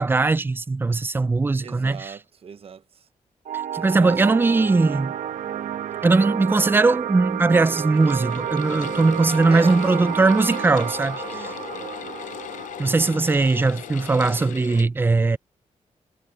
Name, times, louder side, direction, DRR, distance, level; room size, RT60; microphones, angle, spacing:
voice 1, 0.0-2.1 3.7-5.1 6.0-11.5 12.8-15.4, right 3 dB, 15° right, 0.4 m, -20 dB
voice 2, 1.6-3.1 4.0-4.2 4.6-5.1 8.9-9.0 9.5-9.8 11.3-11.9, right 7 dB, 50° right, 0.9 m, -40 dB
sound 1, 3.4-14.5, right 10 dB, 85° right, 1.2 m, -31 dB
sound 2, 7.7-14.9, left 11 dB, 85° left, 0.5 m, -37 dB
wide cardioid pair, 125°, 13 cm